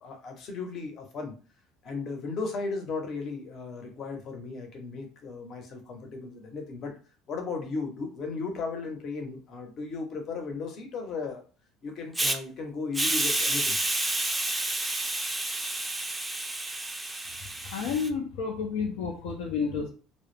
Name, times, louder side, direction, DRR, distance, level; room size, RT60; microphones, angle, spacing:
voice 1, 0.0-1.3 1.8-6.9 7.3-11.4 11.8-13.8, left 4 dB, 50° left, 3 dB, 0.7 m, -36 dB
Hiss, 12.1-12.4 12.9-18.1, right 2 dB, 10° right, 0.4 m, -29 dB
voice 2, 17.6-19.9, left 5 dB, 90° left, 1 dB, 0.5 m, -30 dB
2.2 x 2.0 x 3.2 m, 0.36 s
supercardioid pair, 110°, 0 cm